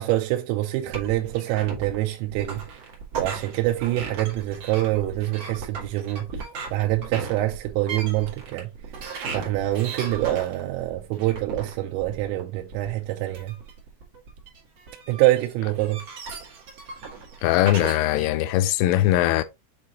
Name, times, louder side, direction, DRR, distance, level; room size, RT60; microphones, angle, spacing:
voice 1, 0.0-2.9 3.2-6.5 6.7-8.7 9.3-13.6 15.1-16.0, right 16 dB, 85° right, 3.3 m, -25 dB
sound 1, 0.9-18.3, right 5 dB, 65° right, 1.5 m, -36 dB
voice 2, 17.4-19.4, left 14 dB, 85° left, 3.0 m, -21 dB
8.7 x 4.0 x 2.8 m
omnidirectional pair, 6.0 m